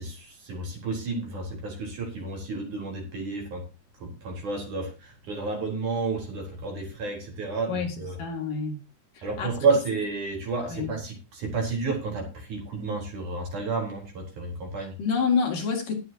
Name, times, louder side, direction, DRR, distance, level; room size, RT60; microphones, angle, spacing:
voice 1, 0.0-3.7 4.0-8.2 9.2-15.0, right 3 dB, 50° right, 2 dB, 5.2 m, -31 dB
voice 2, 7.7-8.8 9.1-9.5 10.7-10.9 15.0-15.9, left 5 dB, 55° left, 2 dB, 3.8 m, -28 dB
20.5 x 8.0 x 2.8 m, 0.27 s
omnidirectional pair, 4.7 m